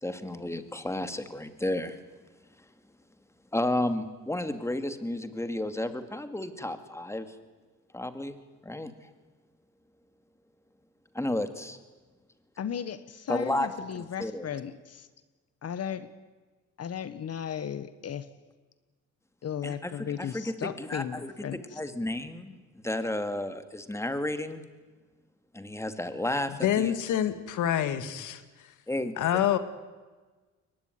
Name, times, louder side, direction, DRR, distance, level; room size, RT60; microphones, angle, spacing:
voice 1, 0.0-2.0 3.5-7.3 7.9-8.9 11.1-11.8 13.3-13.7 14.2-14.5 19.6-24.6 25.5-26.9 28.9-29.2, left 1 dB, 10° left, 9 dB, 2.2 m, -32 dB
voice 2, 12.6-15.1 15.6-16.1 16.8-18.3 19.4-21.8, left 8 dB, 55° left, 13 dB, 1.3 m, -35 dB
voice 3, 26.5-28.4 29.2-29.6, left 11 dB, 80° left, 11 dB, 1.8 m, -27 dB
22.5 x 19.5 x 9.4 m, 1.3 s
cardioid pair, 90°, 30 cm